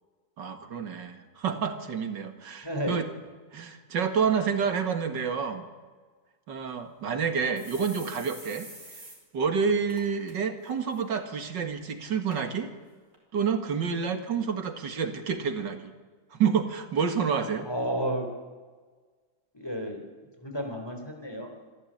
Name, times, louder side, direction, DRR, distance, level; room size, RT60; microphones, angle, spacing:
voice 1, 0.4-3.1 3.5-5.7 6.5-8.7 9.3-12.7 13.3-15.9 16.3-17.7, right 6 dB, 75° right, 7 dB, 2.5 m, -29 dB
voice 2, 2.6-3.0 17.6-18.3 19.5-20.0 20.4-21.5, equal, 15° left, 3 dB, 3.5 m, -31 dB
sound 1, 6.6-6.7 7.0-7.1 7.6-9.2 9.5-9.6 9.9-10.3 10.7-11.0 11.7-11.8 12.3-12.4 13.1-13.2, right 2 dB, 40° right, 5.8 m, -46 dB
26.0 x 14.0 x 8.8 m, 1.4 s
omnidirectional pair, 2.0 m